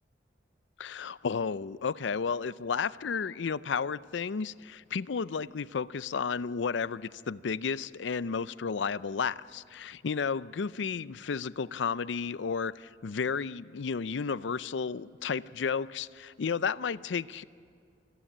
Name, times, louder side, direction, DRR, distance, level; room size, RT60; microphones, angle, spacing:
voice 1, 0.8-17.4, left 5 dB, 80° left, 17 dB, 0.5 m, -32 dB
26.0 x 14.5 x 10.0 m, 2.2 s
head